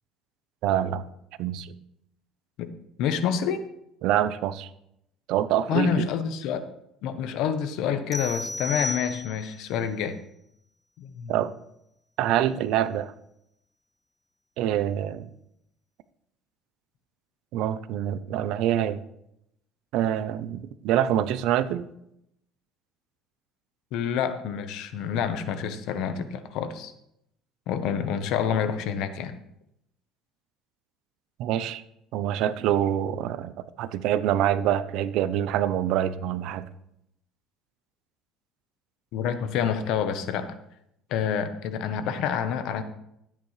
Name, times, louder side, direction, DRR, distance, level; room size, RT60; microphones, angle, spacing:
voice 1, 0.6-1.1 1.4-1.7 4.0-4.7 5.3-6.1 11.3-11.5 12.2-13.1 14.6-15.3 17.5-19.0 19.9-21.9 31.4-31.8 32.1-36.7, right 11 dB, 70° right, 14 dB, 0.6 m, -25 dB
voice 2, 3.0-3.6 5.7-6.6 7.0-10.2 11.0-11.4 23.9-26.9 27.7-29.3 39.1-40.5 41.1-42.8, left 7 dB, 70° left, 10 dB, 1.0 m, -28 dB
sound 1, 8.1-9.6, left 2 dB, 10° left, 0.4 m, -33 dB
13.0 x 9.0 x 3.3 m, 0.79 s
cardioid pair, 120°, 0 cm